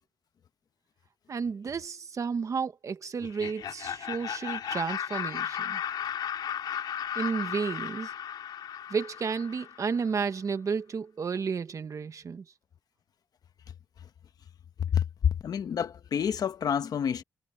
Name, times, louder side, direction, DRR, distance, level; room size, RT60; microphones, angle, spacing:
voice 1, 1.3-5.8 7.1-8.1 8.9-12.4, right 5 dB, 50° right, 1.4 m, -32 dB
Laughter, 3.2-10.0, left 9 dB, 85° left, 3.0 m, -35 dB
voice 2, 14.8-17.2, left 8 dB, 65° left, 1.1 m, -28 dB
cardioid pair, 105°, 7 cm